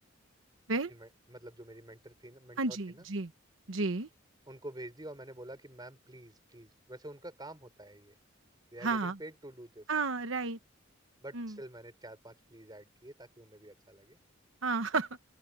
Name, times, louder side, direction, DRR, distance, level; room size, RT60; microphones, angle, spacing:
voice 1, 0.9-3.1 4.5-8.2 8.7-9.9 11.2-14.2, right 1 dB, 20° right, 5.7 m, -48 dB
voice 2, 2.6-3.3 3.7-4.1 8.8-9.2 9.9-10.6 11.3-11.6 14.6-15.1, right 3 dB, 85° right, 1.1 m, -32 dB
open air
head